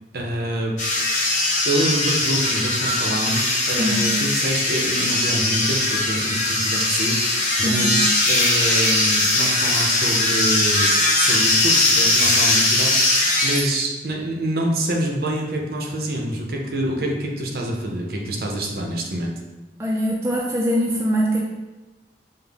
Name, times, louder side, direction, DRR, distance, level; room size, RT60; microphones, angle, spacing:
voice 1, 0.1-0.8 1.2-1.4 1.6-10.9 11.2-19.3, right 1 dB, 50° right, 0 dB, 0.6 m, -26 dB
sound 1, 0.8-13.6, left 2 dB, 40° left, 0.7 m, -20 dB
voice 2, 7.6-8.1 19.8-21.4, equal, 15° right, -3 dB, 0.3 m, -22 dB
5.5 x 2.0 x 3.4 m, 1.1 s
head